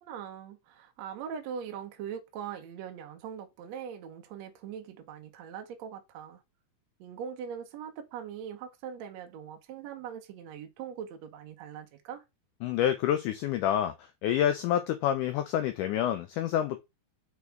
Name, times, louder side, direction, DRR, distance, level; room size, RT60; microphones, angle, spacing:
voice 1, 0.0-6.4 7.0-12.2, right 8 dB, 75° right, 1.6 m, -41 dB
voice 2, 12.6-13.9 14.2-16.8, left 10 dB, 90° left, 1.8 m, -28 dB
6.1 x 4.7 x 3.4 m
omnidirectional pair, 4.2 m